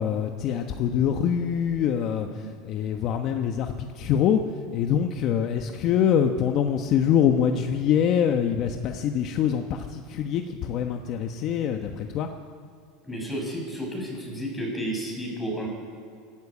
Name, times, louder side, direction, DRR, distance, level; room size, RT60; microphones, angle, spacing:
voice 1, 0.0-4.4 4.7-12.3, left 8 dB, 45° left, 5 dB, 1.2 m, -24 dB
voice 2, 13.0-15.7, right 1 dB, 5° left, -1 dB, 6.8 m, -32 dB
24.0 x 13.5 x 8.5 m, 2.2 s
supercardioid pair, 140°, 0 cm